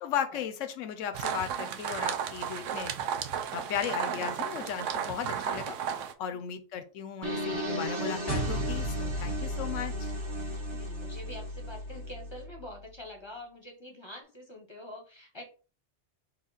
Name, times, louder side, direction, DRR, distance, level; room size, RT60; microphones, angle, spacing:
voice 1, 0.0-2.9 3.5-5.8 6.2-10.1, left 8 dB, 90° left, 8 dB, 1.0 m, -36 dB
sound 1, 1.1-6.1, right 8 dB, 85° right, 0.9 m, -33 dB
sound 2, 7.2-12.1, right 1 dB, 30° right, 0.7 m, -37 dB
sound 3, 8.3-12.9, equal, 65° right, 1.8 m, -35 dB
voice 2, 10.7-15.4, left 1 dB, 25° left, 1 dB, 0.7 m, -45 dB
4.2 x 2.4 x 3.9 m, 0.37 s
omnidirectional pair, 1.3 m